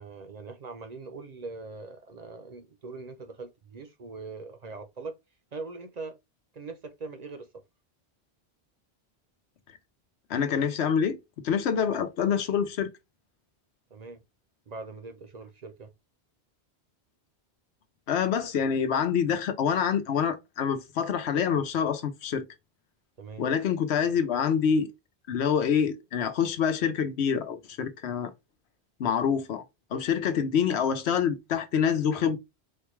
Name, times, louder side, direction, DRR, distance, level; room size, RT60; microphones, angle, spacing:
voice 1, 0.0-5.1 5.5-6.2 6.5-7.5 13.9-14.2 14.7-15.9 23.2-23.5, right 3 dB, 50° right, 0.6 m, -41 dB
voice 2, 10.3-11.2 11.4-12.9 18.1-22.4 23.4-24.9 25.3-28.3 29.0-29.6 29.9-32.4, left 7 dB, 90° left, 1.0 m, -26 dB
4.2 x 2.2 x 3.0 m
omnidirectional pair, 1.1 m